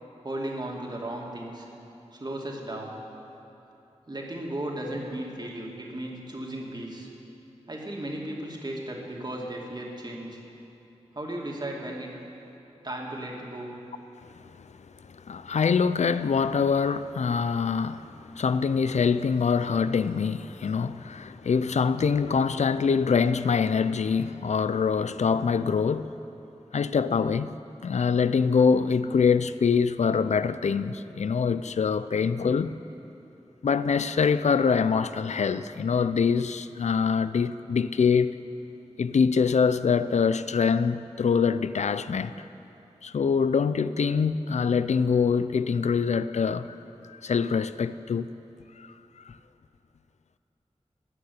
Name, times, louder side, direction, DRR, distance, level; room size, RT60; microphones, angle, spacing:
voice 1, 0.2-1.7 2.1-3.0 4.1-7.1 7.7-10.4 11.1-12.1 12.8-13.7, right 1 dB, 40° right, 2.3 m, -35 dB
voice 2, 15.3-26.1 26.7-27.5 27.8-32.8 33.6-38.4 39.0-42.3 43.0-46.7 47.1-48.3 48.8-48.9 49.3-49.4, left 6 dB, 80° left, 0.4 m, -24 dB
18.0 x 6.7 x 9.4 m
wide cardioid pair, 75°, 12 cm